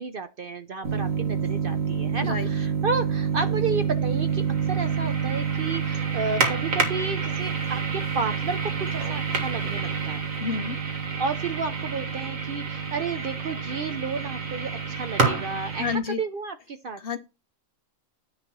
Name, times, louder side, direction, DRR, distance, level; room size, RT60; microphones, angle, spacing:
voice 1, 0.0-10.2 11.2-17.0, right 4 dB, 55° right, 0.7 m, -32 dB
sound 1, 0.8-15.9, right 6 dB, 80° right, 2.0 m, -27 dB
voice 2, 10.4-10.8 15.8-16.2 17.0-17.2, left 6 dB, 55° left, 0.8 m, -29 dB
9.8 x 4.0 x 6.0 m
omnidirectional pair, 1.4 m